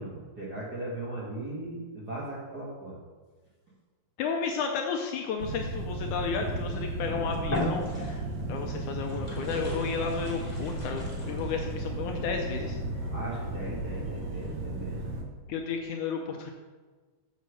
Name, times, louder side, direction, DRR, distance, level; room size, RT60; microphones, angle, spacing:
voice 1, 0.0-3.0 7.1-7.4 13.1-15.0, right 2 dB, 45° right, -6 dB, 1.3 m, -38 dB
voice 2, 4.2-8.2 8.5-12.8 15.5-16.5, left 5 dB, 75° left, 3 dB, 1.9 m, -32 dB
sound 1, 5.4-15.2, right 2 dB, 85° right, 1.0 m, -34 dB
sound 2, 6.9-7.0 7.4-8.4 9.0-11.8, left 1 dB, 15° left, 2.0 m, -36 dB
7.3 x 7.1 x 6.3 m, 1.4 s
omnidirectional pair, 4.0 m